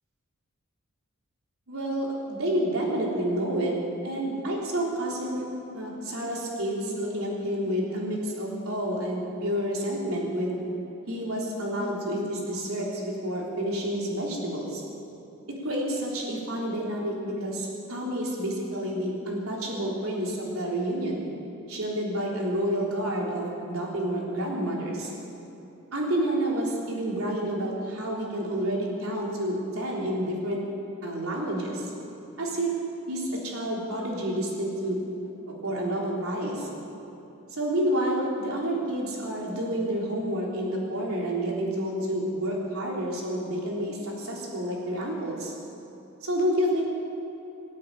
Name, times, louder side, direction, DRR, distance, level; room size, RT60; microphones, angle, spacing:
voice 1, 1.7-3.8 4.0-5.5 5.7-10.6 11.1-14.8 15.6-21.3 21.7-25.1 25.9-30.6 31.0-31.9 32.4-32.7 33.1-35.0 35.5-36.7 37.5-45.5 46.2-46.8, right 1 dB, 80° right, -3 dB, 3.7 m, -29 dB
19.0 x 8.5 x 8.8 m, 3.0 s
head